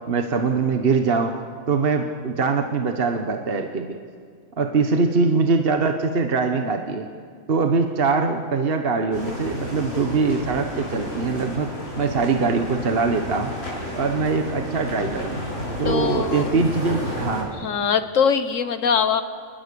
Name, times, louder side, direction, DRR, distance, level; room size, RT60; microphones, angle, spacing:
voice 1, 0.1-1.3 1.7-4.0 4.6-7.1 7.5-11.7 12.0-13.5 14.0-15.4 15.8-17.5, right 4 dB, 45° right, 5 dB, 1.3 m, -22 dB
sound 1, 9.1-17.4, left 1 dB, 45° left, 7.9 m, -31 dB
voice 2, 15.8-16.5 17.6-19.2, left 7 dB, 65° left, 10 dB, 1.5 m, -22 dB
29.0 x 21.0 x 6.9 m, 2.1 s
omnidirectional pair, 1.5 m